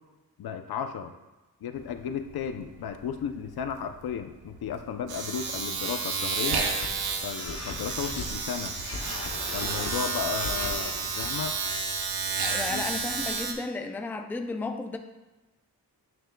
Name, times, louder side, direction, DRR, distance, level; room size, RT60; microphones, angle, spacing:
voice 1, 0.4-1.1 1.6-6.6 7.2-8.7 9.5-11.6 12.7-12.8, left 7 dB, 80° left, 8 dB, 0.6 m, -34 dB
Domestic sounds home sounds, 1.8-2.0 2.3-13.5, right 4 dB, 80° right, 0.9 m, -31 dB
sound 1, 6.4-8.3 8.8-11.5, left 3 dB, 45° left, 0.7 m, -39 dB
voice 2, 12.4-15.0, left 3 dB, 5° left, 6 dB, 0.3 m, -33 dB
9.0 x 6.2 x 2.2 m, 1.1 s
wide cardioid pair, 150°, 37 cm